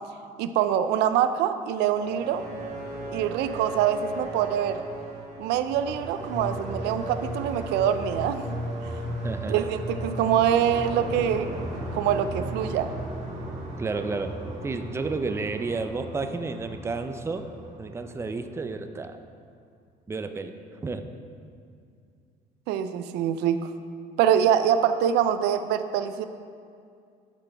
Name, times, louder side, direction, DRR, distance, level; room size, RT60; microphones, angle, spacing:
voice 1, 0.4-2.4 3.1-4.8 5.4-8.6 9.5-11.5 11.9-12.9 22.7-23.7 24.2-26.3, right 9 dB, 90° right, 11 dB, 0.4 m, -24 dB
sound 1, 1.9-18.7, right 1 dB, 45° right, 1.9 m, -36 dB
voice 2, 9.2-9.7 13.8-14.3 14.6-17.5 17.8-19.2 20.1-20.5 20.8-21.0, right 3 dB, 15° right, 8 dB, 0.5 m, -31 dB
11.5 x 5.9 x 3.4 m, 2.3 s
cardioid pair, 110°, 17 cm